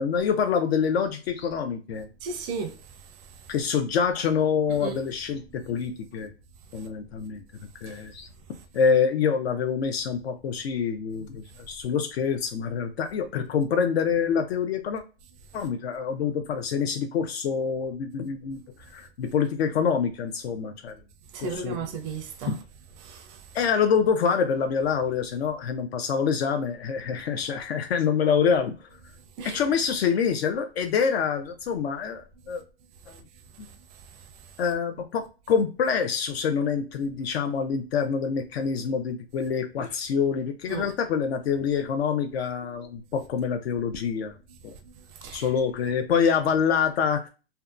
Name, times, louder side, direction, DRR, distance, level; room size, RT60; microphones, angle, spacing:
voice 1, 0.0-2.1 3.5-6.3 6.7-7.4 7.8-8.3 8.7-15.0 15.5-18.6 18.9-20.9 21.4-21.9 22.5-22.6 23.5-28.9 29.4-32.6 33.1-33.2 33.6-33.7 34.6-44.4 44.6-44.8 45.3-47.3, left 6 dB, 70° left, 0.5 m, -26 dB
voice 2, 2.2-2.7 4.8-4.9 21.3-22.5 23.0-23.4 29.4-29.6 40.7-40.9 45.2-45.5, right 5 dB, 25° right, 0.4 m, -34 dB
2.7 x 2.2 x 2.4 m
hypercardioid pair, 130°, 33 cm